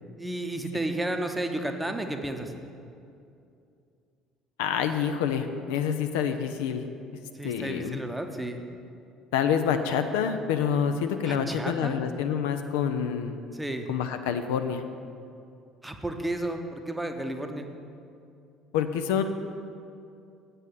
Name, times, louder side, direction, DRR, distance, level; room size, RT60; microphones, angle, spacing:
voice 1, 0.2-2.5 7.3-8.6 11.2-12.0 13.5-13.9 15.8-17.7, right 1 dB, 10° right, 5 dB, 0.8 m, -32 dB
voice 2, 4.6-6.8 7.4-8.0 9.3-13.3 13.9-14.8 18.7-19.2, left 7 dB, 65° left, 7 dB, 0.4 m, -27 dB
8.4 x 5.5 x 7.5 m, 2.5 s
figure-of-eight pair, 55°, 0 cm